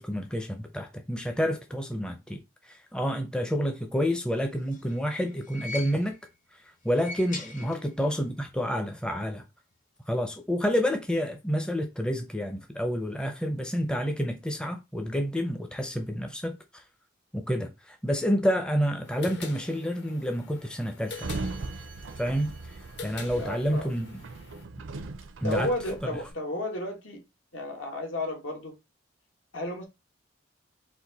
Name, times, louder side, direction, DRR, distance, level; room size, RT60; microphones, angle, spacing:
voice 1, 0.0-6.2 6.8-9.4 10.1-16.8 17.3-21.3 22.2-22.5 23.0-24.2 25.4-25.7, equal, 5° left, 0.5 m, -29 dB
sound 1, 4.4-6.3 6.8-8.2 8.5-8.6 9.7-9.8, left 2 dB, 40° left, 0.6 m, -42 dB
sound 2, 19.0-24.6, left 4 dB, 60° left, 1.0 m, -45 dB
Sliding door, 21.1-26.3, right 3 dB, 80° right, 0.5 m, -39 dB
voice 2, 23.3-23.9 25.4-27.2 27.5-28.8 29.5-29.8, left 1 dB, 80° left, 1.4 m, -33 dB
4.3 x 2.5 x 4.0 m
head